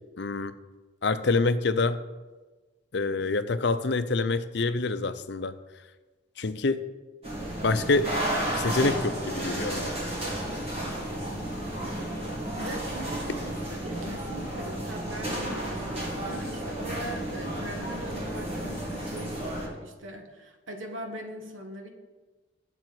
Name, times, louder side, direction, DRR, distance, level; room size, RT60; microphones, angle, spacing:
voice 1, 0.2-0.5 1.0-2.0 2.9-5.5 6.4-6.8 7.6-8.1 8.6-9.9, left 3 dB, 55° left, 11 dB, 0.6 m, -26 dB
voice 2, 3.0-3.4 12.6-21.9, right 1 dB, 80° right, 4 dB, 1.6 m, -41 dB
sound 1, 7.2-19.7, right 1 dB, 30° right, 2.3 m, -32 dB
7.9 x 7.4 x 7.9 m, 1.2 s
head